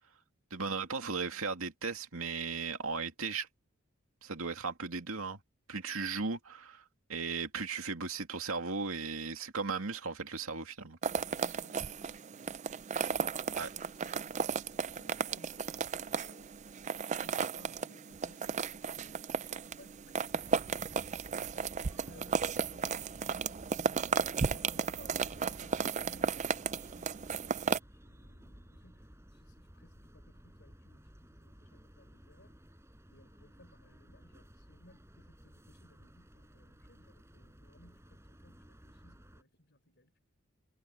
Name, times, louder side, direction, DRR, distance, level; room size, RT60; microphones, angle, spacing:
voice 1, 0.5-3.5 4.2-5.4 5.7-6.8 7.1-11.0 13.6-13.7, right 4 dB, 85° right, 2.4 m, -36 dB
sound 1, 11.0-27.8, right 6 dB, 35° right, 0.4 m, -34 dB
voice 2, 11.2-12.6 13.5-14.4 14.9-16.5 17.2-19.2 19.5-20.8 22.0-23.9 24.3-32.6 33.1-40.2, left 1 dB, 55° left, 4.9 m, -61 dB
sound 2, 20.3-39.4, equal, 15° right, 5.8 m, -56 dB
head